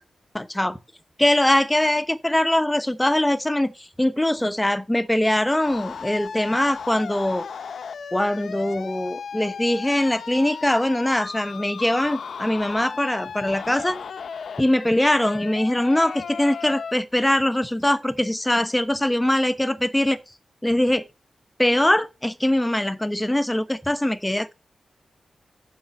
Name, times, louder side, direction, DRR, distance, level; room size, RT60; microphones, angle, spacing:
voice 1, 0.3-0.8 1.2-7.4 8.1-14.0 14.6-20.2 20.6-21.0 21.6-24.5, left 1 dB, 10° left, 1.0 m, -22 dB
sound 1, 5.6-16.9, left 6 dB, 75° left, 0.8 m, -36 dB
7.2 x 6.2 x 7.1 m
wide cardioid pair, 105°, 0 cm